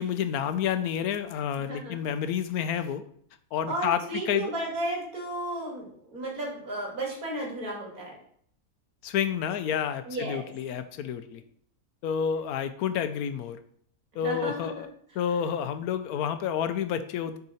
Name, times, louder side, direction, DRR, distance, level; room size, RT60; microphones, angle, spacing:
voice 1, 0.0-3.0 3.5-4.5 9.0-11.4 12.0-13.6 14.2-14.9 15.2-17.4, left 8 dB, 80° left, 10 dB, 1.1 m, -29 dB
voice 2, 1.7-2.0 3.7-8.1 10.1-10.5 11.3-11.4 14.2-14.5, right 1 dB, 80° right, -2 dB, 2.7 m, -33 dB
6.6 x 4.8 x 4.2 m, 0.63 s
omnidirectional pair, 1.5 m